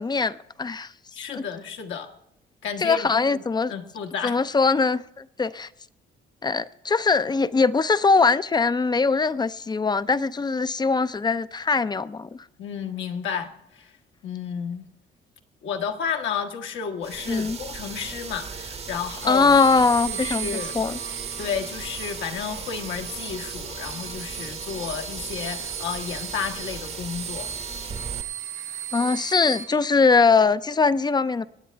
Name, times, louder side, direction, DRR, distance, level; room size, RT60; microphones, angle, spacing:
voice 1, 0.0-0.9 1.3-1.4 2.8-3.7 4.2-5.7 6.4-12.4 17.3-17.6 19.2-20.5 20.7-21.0 28.9-31.5, left 4 dB, 20° left, 0.4 m, -21 dB
voice 2, 1.1-2.1 2.6-3.4 3.7-4.4 12.6-13.9 14.2-14.9 15.6-19.6 20.1-20.7 21.4-27.5, left 7 dB, 75° left, 1.4 m, -32 dB
sound 1, 17.0-28.2, right 5 dB, 30° right, 0.8 m, -37 dB
sound 2, 19.2-29.6, right 8 dB, 80° right, 2.4 m, -36 dB
25.0 x 9.4 x 3.4 m
cardioid pair, 90°, 20 cm